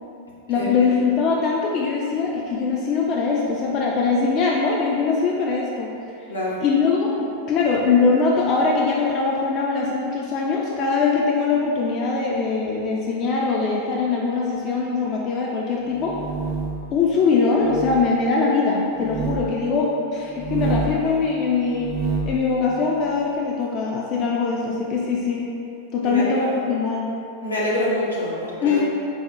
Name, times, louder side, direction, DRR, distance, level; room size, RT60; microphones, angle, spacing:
voice 1, 0.5-5.9 6.6-16.2 16.9-21.9 22.3-25.5 25.9-27.1 28.6-28.9, left 4 dB, 35° left, -2 dB, 0.3 m, -22 dB
voice 2, 6.3-6.6 26.0-26.6 27.4-28.8, left 1 dB, 80° left, -6 dB, 0.8 m, -26 dB
sound 1, 15.9-16.9 17.6-18.0 19.0-19.4 20.3-21.0 21.7-22.4, right 4 dB, 45° right, 0.6 m, -27 dB
4.1 x 2.1 x 3.7 m, 2.7 s
figure-of-eight pair, 90°, 0 cm